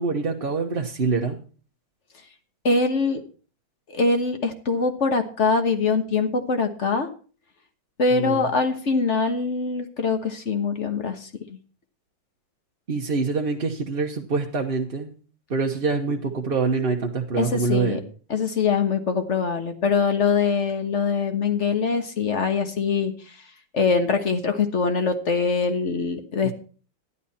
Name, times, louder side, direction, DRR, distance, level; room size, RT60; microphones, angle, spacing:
voice 1, 0.0-1.4 8.1-8.4 12.9-15.1 15.5-18.0 26.4-26.5, right 4 dB, 35° right, 0 dB, 1.0 m, -25 dB
voice 2, 2.6-3.2 3.9-7.1 8.0-11.3 17.4-18.0 18.3-23.1 23.7-26.5, left 4 dB, 40° left, 7 dB, 1.5 m, -23 dB
12.5 x 11.0 x 4.3 m, 0.39 s
omnidirectional pair, 2.1 m